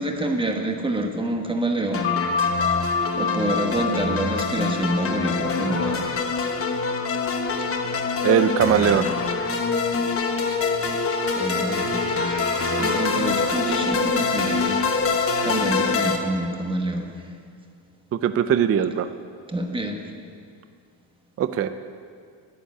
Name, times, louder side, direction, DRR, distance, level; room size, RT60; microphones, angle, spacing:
voice 1, 0.0-2.1 3.1-6.2 11.3-12.5 12.8-14.8 15.4-17.2 19.5-20.0, right 1 dB, 10° right, 3 dB, 1.2 m, -27 dB
sound 1, 1.9-16.2, left 4 dB, 25° left, 1.1 m, -25 dB
sound 2, 2.0-7.2, left 6 dB, 55° left, 2.2 m, -29 dB
voice 2, 8.2-9.1 18.1-19.1 21.4-21.7, right 9 dB, 30° right, 11 dB, 0.4 m, -20 dB
Wind instrument woodwind instrument, 10.4-13.7, right 2 dB, 70° right, 1.2 m, -35 dB
10.0 x 9.5 x 8.3 m, 2.2 s
cardioid pair, 135°, 49 cm